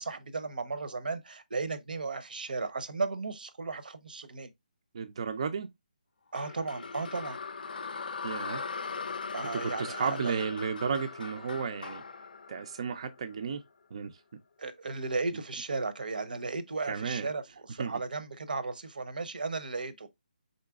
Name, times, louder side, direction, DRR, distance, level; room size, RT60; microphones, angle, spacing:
voice 1, 0.0-4.5 6.3-7.4 9.3-10.3 14.6-17.4 17.7-20.1, right 3 dB, 80° right, 0.7 m, -35 dB
voice 2, 4.9-5.7 8.2-8.6 9.5-12.0 12.5-13.6 13.9-14.2 16.9-17.3 17.8-18.0, right 6 dB, 40° right, 0.4 m, -33 dB
sound 1, 6.4-13.5, left 5 dB, 75° left, 0.5 m, -39 dB
4.0 x 3.8 x 2.3 m
hypercardioid pair, 170°, 5 cm